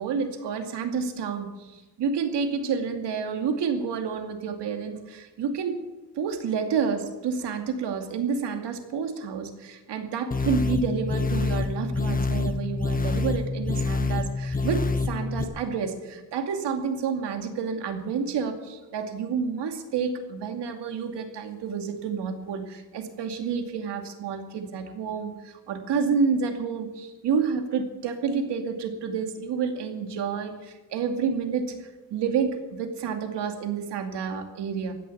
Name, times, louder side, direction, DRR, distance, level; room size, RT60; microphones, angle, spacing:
voice 1, 0.0-5.8 6.2-34.9, right 6 dB, 80° right, 5 dB, 2.6 m, -29 dB
sound 1, 10.3-15.4, left 3 dB, 20° left, 1.1 m, -27 dB
15.5 x 10.5 x 8.6 m, 1.1 s
cardioid pair, 120°, 40 cm